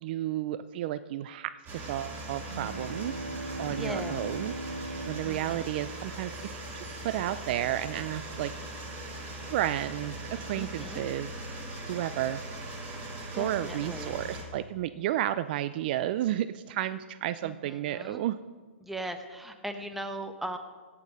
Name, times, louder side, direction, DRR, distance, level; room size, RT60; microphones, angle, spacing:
voice 1, 0.0-3.2 3.6-4.5 5.0-6.6 7.0-8.5 9.5-10.2 10.5-11.4 11.9-12.4 13.3-18.4, right 13 dB, 45° right, 13 dB, 0.4 m, -32 dB
sound 1, 1.7-14.4, right 2 dB, 25° right, 2.6 m, -40 dB
sound 2, 2.4-6.4, right 2 dB, 90° right, 1.0 m, -39 dB
voice 2, 3.7-4.2 5.3-5.7 10.6-11.0 13.3-14.2 17.4-18.2 18.8-20.6, right 1 dB, 5° right, 6 dB, 0.9 m, -39 dB
16.5 x 5.9 x 5.4 m, 1.4 s
hypercardioid pair, 130°, 7 cm